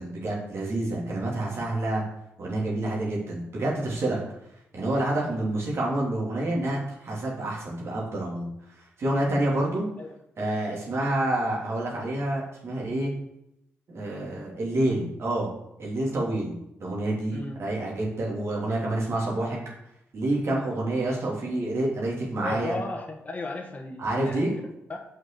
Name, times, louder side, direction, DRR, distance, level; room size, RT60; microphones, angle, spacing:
voice 1, 0.0-2.0 2.4-4.2 4.7-8.5 9.0-9.9 10.4-13.1 13.9-15.5 15.8-19.6 20.1-22.8 24.0-24.5, right 1 dB, 60° right, -4 dB, 2.9 m, -28 dB
voice 2, 17.3-17.6 22.4-24.4 24.9-25.0, left 2 dB, 30° left, 0 dB, 1.4 m, -35 dB
6.1 x 5.8 x 6.8 m, 0.81 s
cardioid pair, 65°, 5 cm